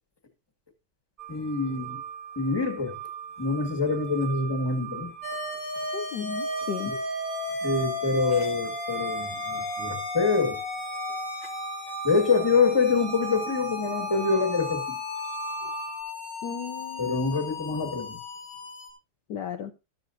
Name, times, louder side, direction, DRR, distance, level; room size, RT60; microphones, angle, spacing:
sound 1, 1.2-16.0, right 10 dB, 35° right, 0.9 m, -39 dB
voice 1, 1.3-2.0 2.3-3.0 3.4-5.1 6.8-7.0 7.6-10.6 12.0-15.0 15.6-15.7 17.0-18.2, left 4 dB, 10° left, 1.7 m, -26 dB
sound 2, 5.2-18.9, left 4 dB, 85° left, 3.4 m, -35 dB
voice 2, 5.9-6.9 16.4-17.2 19.3-19.7, left 7 dB, 65° left, 1.3 m, -34 dB
13.5 x 12.0 x 2.6 m
omnidirectional pair, 2.3 m